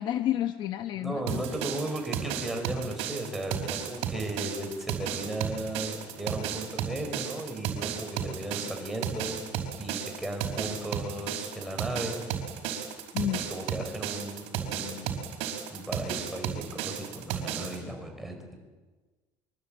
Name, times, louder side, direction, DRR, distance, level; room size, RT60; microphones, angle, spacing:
voice 1, 0.0-1.4 13.1-13.4 13.8-13.9, left 11 dB, 40° left, 8 dB, 1.0 m, -30 dB
voice 2, 0.9-9.4 9.8-12.2 13.5-15.2 15.7-18.6, right 1 dB, ahead, 2 dB, 4.8 m, -36 dB
sound 1, 1.3-17.8, right 9 dB, 60° right, 5.3 m, -34 dB
25.0 x 24.5 x 8.9 m, 1.3 s
cardioid pair, 175°, 11 cm